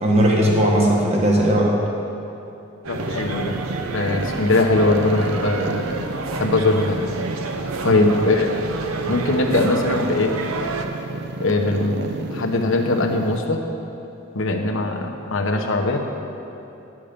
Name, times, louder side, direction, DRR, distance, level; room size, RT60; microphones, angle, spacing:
voice 1, 0.0-1.7 7.8-8.1, right 1 dB, 30° right, -2 dB, 1.3 m, -18 dB
sound 1, 2.8-10.9, right 3 dB, 90° right, 0.7 m, -30 dB
voice 2, 2.9-3.6 3.9-5.8 6.3-7.0 7.8-8.6 9.1-10.3 11.4-13.6 14.3-16.0, left 2 dB, 70° left, 2 dB, 1.0 m, -21 dB
sound 2, 2.9-13.4, right 3 dB, 50° right, 0.4 m, -32 dB
11.5 x 7.4 x 5.2 m, 2.9 s
head